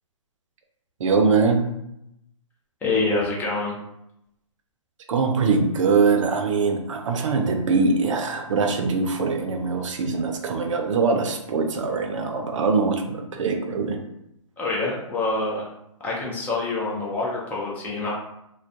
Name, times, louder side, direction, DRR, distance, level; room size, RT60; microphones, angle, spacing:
voice 1, 1.0-1.6 5.1-14.0, right 4 dB, 65° right, 4 dB, 0.5 m, -22 dB
voice 2, 2.8-3.8 14.6-15.6 16.0-18.1, left 3 dB, 10° left, -4 dB, 0.3 m, -26 dB
2.2 x 2.1 x 2.6 m, 0.82 s
hypercardioid pair, 140°, 17 cm